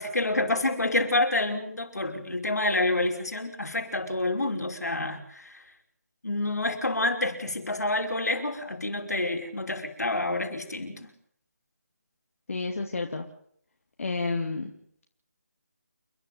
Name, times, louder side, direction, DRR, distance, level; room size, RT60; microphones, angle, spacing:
voice 1, 0.0-5.6 6.2-11.1, left 2 dB, 80° left, 3 dB, 5.4 m, -28 dB
voice 2, 12.5-13.3 14.0-14.7, left 3 dB, 55° left, 3 dB, 2.6 m, -30 dB
29.5 x 11.0 x 9.3 m, 0.67 s
figure-of-eight pair, 155°, 9 cm